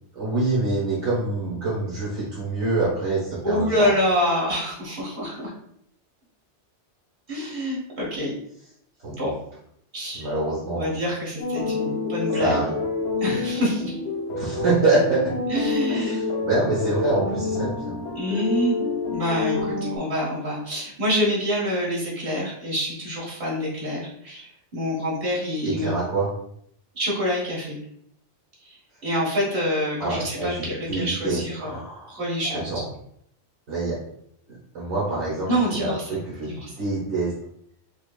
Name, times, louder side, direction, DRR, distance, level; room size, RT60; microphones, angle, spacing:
voice 1, 0.1-3.9 9.0-9.3 10.1-10.9 12.4-12.7 14.3-15.2 15.9-17.9 25.6-26.3 30.0-32.2 32.5-32.8 33.7-34.0 34.7-35.5 35.8-37.3, right 2 dB, 75° right, -7 dB, 1.4 m, -25 dB
voice 2, 3.4-5.5 7.3-8.3 9.2-9.3 9.9-10.3 10.7-12.6 13.2-13.9 15.5-16.3 18.1-25.9 26.9-27.8 28.6-31.8 32.1-32.8 35.5-36.2 36.5-36.7, equal, 55° right, -6 dB, 1.7 m, -26 dB
sound 1, 11.4-20.0, left 3 dB, 65° left, 1.0 m, -28 dB
6.0 x 2.2 x 2.2 m, 0.69 s
omnidirectional pair, 1.2 m